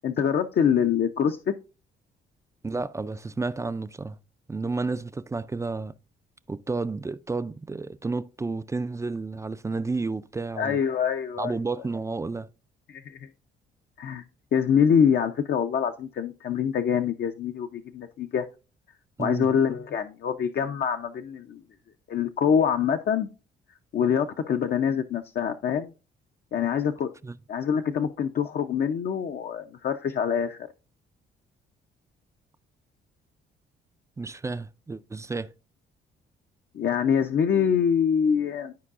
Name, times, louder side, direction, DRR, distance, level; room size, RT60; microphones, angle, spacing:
voice 1, 0.0-1.5 10.6-11.6 12.9-13.3 14.0-14.2 14.5-18.4 19.2-21.6 22.1-23.3 23.9-25.9 26.5-27.1 27.5-30.7 36.7-38.7, left 7 dB, 55° left, 0.6 m, -25 dB
voice 2, 2.6-4.2 4.5-5.9 6.5-10.8 11.4-12.5 19.2-19.5 27.2-27.4 34.2-35.5, right 3 dB, 15° right, 0.3 m, -31 dB
12.5 x 4.6 x 2.4 m
cardioid pair, 90°, 20 cm